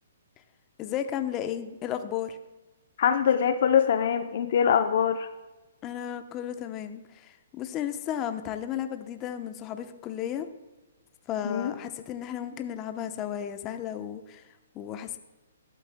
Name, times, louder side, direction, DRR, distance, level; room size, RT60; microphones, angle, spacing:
voice 1, 0.8-2.4 5.8-10.5 11.3-14.4 14.7-15.2, left 10 dB, 25° left, 8 dB, 0.8 m, -34 dB
voice 2, 3.0-5.3 11.4-11.7, left 8 dB, 55° left, 8 dB, 0.7 m, -23 dB
21.0 x 8.2 x 2.2 m, 1.1 s
hypercardioid pair, 130°, 0 cm